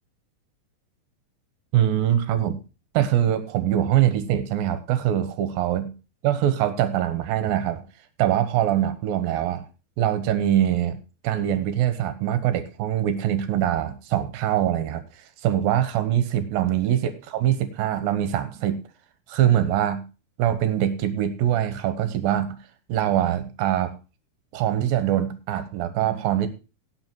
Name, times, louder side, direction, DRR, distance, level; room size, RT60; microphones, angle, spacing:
voice 1, 1.7-2.6 2.9-5.9 6.2-7.8 8.2-9.7 10.0-11.0 11.2-18.8 19.3-20.1 20.4-22.6 22.9-23.9 24.5-26.5, right 11 dB, 70° right, 11 dB, 2.5 m, -23 dB
17.5 x 5.9 x 4.6 m, 0.32 s
omnidirectional pair, 5.0 m